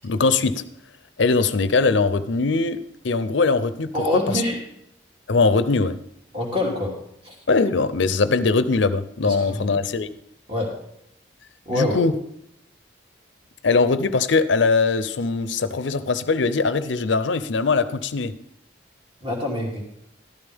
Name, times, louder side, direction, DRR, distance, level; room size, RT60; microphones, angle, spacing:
voice 1, 0.0-0.6 1.2-4.2 5.3-6.0 7.5-10.1 11.7-12.1 13.6-18.3, left 4 dB, 80° left, 13 dB, 0.6 m, -21 dB
voice 2, 3.9-4.6 6.3-6.9 7.2-7.3 9.2-9.7 10.5-10.7 11.7-12.0 19.2-19.8, left 1 dB, 25° right, -1 dB, 2.9 m, -25 dB
13.5 x 11.5 x 3.6 m, 0.73 s
head